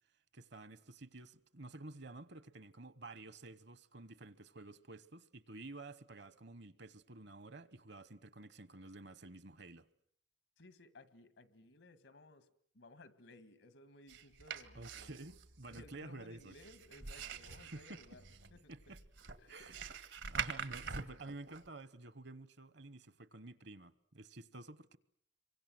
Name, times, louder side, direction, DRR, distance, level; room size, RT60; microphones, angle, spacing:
voice 1, 0.3-9.9 14.7-16.5 17.7-18.2 18.7-19.0 19.5-19.8 20.3-25.0, right 2 dB, 65° right, 1.1 m, -51 dB
voice 2, 10.6-12.5 12.7-15.2 15.7-18.2 18.5-18.7 19.4-19.7, left 2 dB, 85° left, 1.9 m, -59 dB
sound 1, 14.1-21.7, right 6 dB, 90° right, 1.8 m, -45 dB
27.0 x 24.0 x 7.8 m
head